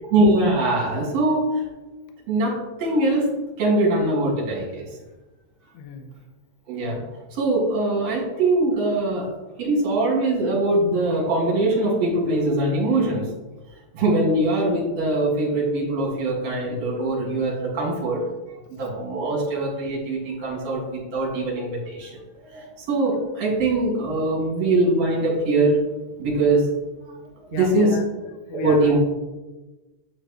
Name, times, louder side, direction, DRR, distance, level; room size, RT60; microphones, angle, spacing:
voice 1, 0.1-1.6 2.3-3.3 3.6-4.9 6.7-7.0 7.3-9.3 9.6-13.3 13.9-18.2 18.5-25.8 26.2-26.7 27.5-28.0 28.6-29.0, right 2 dB, 50° right, -3 dB, 2.9 m, -22 dB
voice 2, 5.7-6.1 20.5-20.7 27.5-28.0 28.5-29.0, left 5 dB, 85° left, 6 dB, 1.8 m, -34 dB
8.7 x 6.5 x 3.0 m, 1.1 s
omnidirectional pair, 4.4 m